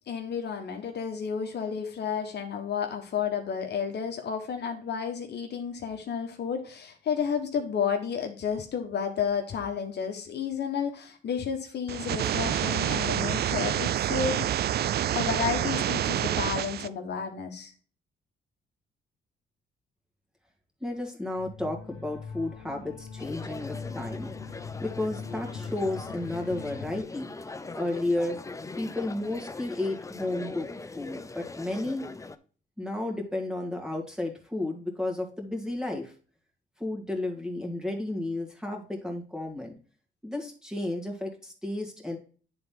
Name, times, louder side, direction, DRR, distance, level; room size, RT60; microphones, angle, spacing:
voice 1, 0.1-14.4 15.1-17.7, left 7 dB, 60° left, 4 dB, 1.2 m, -31 dB
sound 1, 11.9-16.9, right 11 dB, 55° right, 0.4 m, -28 dB
voice 2, 20.8-24.3 24.8-27.3 27.7-28.4 28.8-30.7 30.9-32.0 32.8-36.1 36.8-39.7 40.2-42.2, left 2 dB, 5° right, 1 dB, 2.3 m, -32 dB
sound 2, 21.4-27.0, left 5 dB, 80° left, 1.4 m, -41 dB
sound 3, 23.2-32.4, left 3 dB, 15° left, 0.6 m, -41 dB
9.5 x 4.0 x 3.8 m, 0.40 s
cardioid pair, 90°, 20 cm